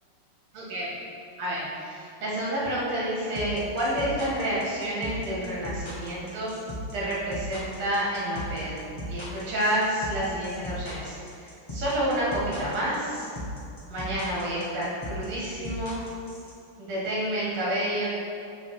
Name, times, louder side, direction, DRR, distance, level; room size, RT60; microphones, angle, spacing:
voice 1, 0.5-1.0 1.4-6.5 6.9-13.3 13.9-16.0 16.8-18.1, right 1 dB, 70° right, -6 dB, 2.7 m, -29 dB
sound 1, 3.3-16.5, equal, 25° left, 0.5 m, -37 dB
6.3 x 5.5 x 4.9 m, 2.6 s
omnidirectional pair, 2.4 m